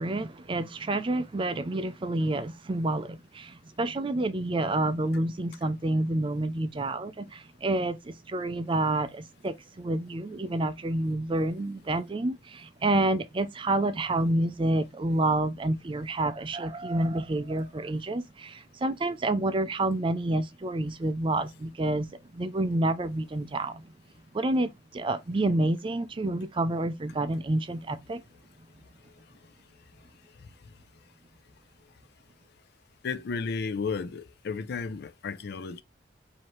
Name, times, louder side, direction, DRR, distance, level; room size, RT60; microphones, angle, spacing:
voice 1, 0.0-23.8 24.3-28.2, right 2 dB, 25° right, 0.4 m, -29 dB
voice 2, 33.0-35.8, left 5 dB, 60° left, 0.4 m, -33 dB
4.6 x 2.8 x 3.0 m
head